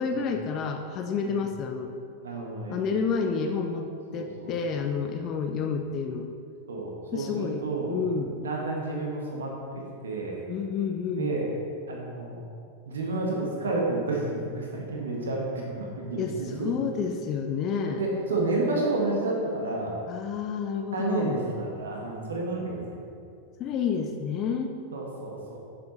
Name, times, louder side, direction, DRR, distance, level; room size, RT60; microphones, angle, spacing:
voice 1, 0.0-1.9 2.7-6.3 7.1-8.4 10.5-11.4 16.2-18.0 20.1-21.4 23.6-24.8, left 5 dB, 35° left, 5 dB, 0.6 m, -30 dB
voice 2, 2.2-2.8 4.1-4.9 5.4-5.6 6.7-8.0 8.4-9.5 10.0-10.4 11.2-11.5 11.9-12.4 12.9-16.7 17.8-19.9 20.9-22.9 24.9-25.6, right 2 dB, 65° right, -1 dB, 1.5 m, -30 dB
11.0 x 7.0 x 3.2 m, 2.4 s
figure-of-eight pair, 90°, 0 cm